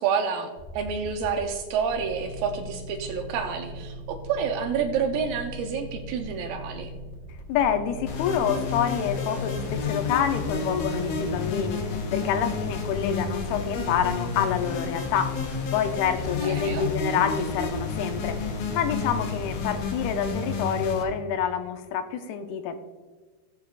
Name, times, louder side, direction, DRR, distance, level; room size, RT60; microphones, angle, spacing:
voice 1, 0.0-6.9 16.4-16.9, right 6 dB, 80° right, 4 dB, 2.2 m, -29 dB
sound 1, 0.6-20.3, equal, 60° right, 0.7 m, -40 dB
voice 2, 7.5-11.8 12.1-15.3 15.7-22.8, left 8 dB, 85° left, 8 dB, 2.5 m, -27 dB
sound 2, 8.1-21.0, left 5 dB, 70° left, 2.1 m, -31 dB
17.5 x 6.8 x 2.4 m, 1.4 s
omnidirectional pair, 4.5 m